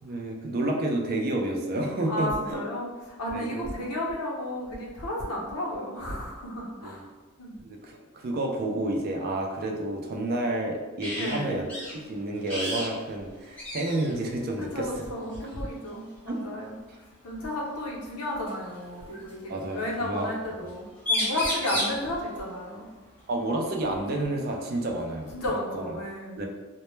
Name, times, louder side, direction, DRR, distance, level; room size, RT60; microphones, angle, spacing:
voice 1, 0.0-2.6 3.3-3.9 6.8-7.0 7.6-14.9 16.3-16.5 19.5-20.5 23.3-25.3 25.7-25.8 26.3-26.5, right 1 dB, 40° right, 1 dB, 0.3 m, -30 dB
voice 2, 2.1-7.1 7.4-7.6 11.2-11.6 14.6-16.7 17.2-22.9 25.3-26.4, left 1 dB, 90° left, -4 dB, 0.7 m, -33 dB
sound 1, 11.0-11.4 11.7-11.9 12.5-12.9 13.2-13.3 13.6-14.1 15.3-15.5 17.2-17.3 18.5-19.3 20.7-20.8 21.0-22.0 23.9-24.0 24.5-25.5, left 1 dB, 5° left, 0.6 m, -31 dB
2.1 x 2.1 x 3.0 m, 1.2 s
head